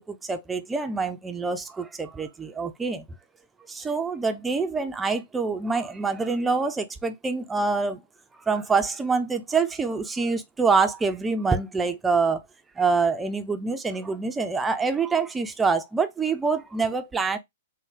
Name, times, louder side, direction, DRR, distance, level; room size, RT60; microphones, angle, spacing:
voice 1, 0.3-3.0 3.8-8.0 8.5-12.4 12.8-17.4, right 4 dB, 10° right, 0.5 m, -25 dB
3.8 x 2.2 x 3.6 m
figure-of-eight pair, 110°, 0 cm